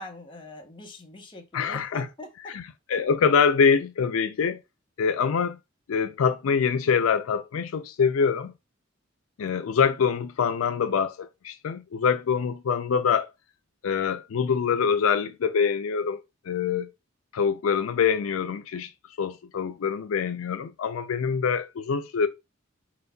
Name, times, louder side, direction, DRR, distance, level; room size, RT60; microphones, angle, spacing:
voice 1, 0.0-2.6, left 1 dB, 25° left, 0.8 m, -42 dB
voice 2, 1.5-2.1 2.5-2.6 2.9-4.6 5.0-5.6 5.9-8.5 9.4-13.3 13.8-16.2 16.5-16.9 17.3-18.9 19.2-22.3, left 6 dB, 85° left, 0.4 m, -24 dB
4.4 x 3.9 x 2.2 m
head